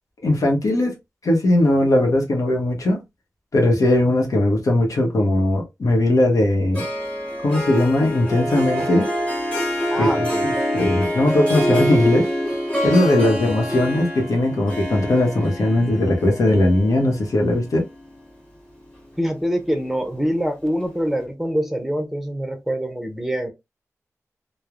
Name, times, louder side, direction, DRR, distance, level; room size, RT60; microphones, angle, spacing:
voice 1, 0.2-1.0 1.2-3.0 3.5-6.8 7.4-9.1 10.0-12.3 12.8-17.9, left 1 dB, 80° left, 0.9 m, -19 dB
Harp, 6.7-18.2, equal, 20° left, 1.2 m, -25 dB
voice 2, 9.9-10.5 19.2-23.5, equal, 5° right, 0.6 m, -24 dB
3.1 x 2.1 x 2.4 m
wide cardioid pair, 95°, 6 cm